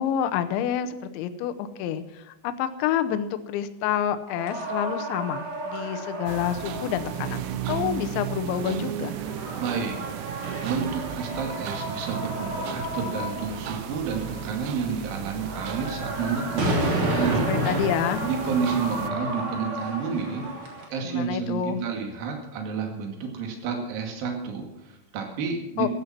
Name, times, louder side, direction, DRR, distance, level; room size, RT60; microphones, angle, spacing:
voice 1, 0.0-7.4 7.7-9.1 17.1-18.3 21.0-21.8 25.8-25.9, left 9 dB, 75° left, 9 dB, 3.0 m, -28 dB
sound 1, 4.3-20.8, right 1 dB, 30° right, 3.1 m, -32 dB
sound 2, 6.3-19.1, right 11 dB, 80° right, 3.2 m, -35 dB
voice 2, 9.6-10.0 10.6-16.7 17.2-17.5 18.2-20.5 20.9-25.9, right 5 dB, 55° right, 2 dB, 3.5 m, -30 dB
15.5 x 11.0 x 5.9 m, 0.90 s
omnidirectional pair, 5.7 m